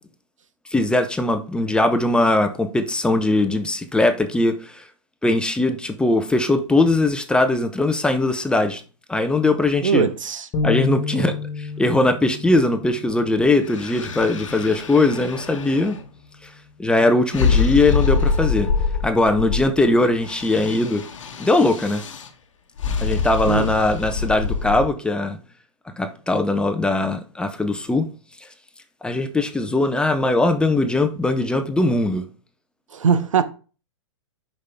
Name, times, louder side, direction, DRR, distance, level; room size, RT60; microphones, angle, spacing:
voice 1, 0.7-4.8 5.2-8.8 9.1-10.1 10.6-16.0 16.8-18.7 19.0-21.0 21.4-22.0 23.0-25.4 26.0-28.1 29.0-32.2, left 2 dB, 5° left, 0.6 m, -20 dB
voice 2, 9.8-10.5 11.1-11.3 23.5-23.7 32.9-33.4, right 6 dB, 80° right, 0.8 m, -21 dB
sound 1, 10.5-14.1, left 5 dB, 30° left, 1.3 m, -29 dB
sound 2, 13.6-16.0 17.3-19.9 20.2-22.3 22.8-24.9, left 5 dB, 75° left, 1.1 m, -25 dB
6.5 x 5.3 x 3.5 m
hypercardioid pair, 125°, 16 cm